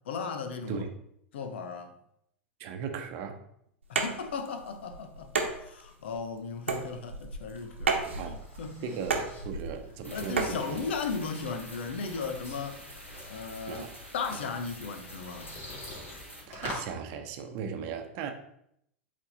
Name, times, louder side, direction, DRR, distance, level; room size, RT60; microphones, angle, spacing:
voice 1, 0.0-0.9 1.3-2.0 3.9-8.9 10.1-12.8 13.3-13.9 14.1-15.6, left 5 dB, 60° left, 0.8 m, -36 dB
voice 2, 2.6-3.4 8.0-8.4 8.8-10.8 13.7-14.0 16.5-18.3, right 6 dB, 45° right, 0.8 m, -37 dB
sound 1, 3.8-10.6, right 4 dB, 75° right, 1.0 m, -33 dB
sound 2, 7.3-16.9, left 2 dB, 35° left, 2.2 m, -47 dB
sound 3, 10.0-16.4, equal, 85° left, 1.7 m, -47 dB
8.2 x 3.6 x 3.9 m
figure-of-eight pair, 90°, 7 cm